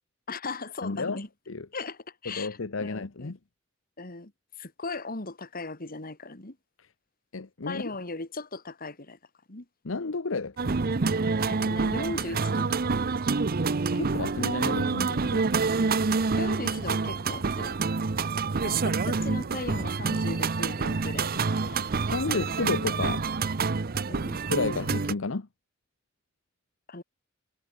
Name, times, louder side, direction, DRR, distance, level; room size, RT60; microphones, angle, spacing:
voice 1, 0.3-1.3 1.7-3.3 4.0-4.3 4.6-6.6 7.6-9.2 9.5-9.7 11.5-13.0 16.4-17.8 18.6-21.9 24.1-24.4 26.9-27.0, left 3 dB, 45° left, 2.4 m, -38 dB
voice 2, 0.8-1.2 1.5-1.7 2.3-3.4 7.3-7.9 9.8-10.8 13.9-15.6 22.1-23.3 24.5-25.5, left 3 dB, 80° left, 0.9 m, -31 dB
sound 1, 10.6-25.1, right 4 dB, 50° right, 0.7 m, -27 dB
head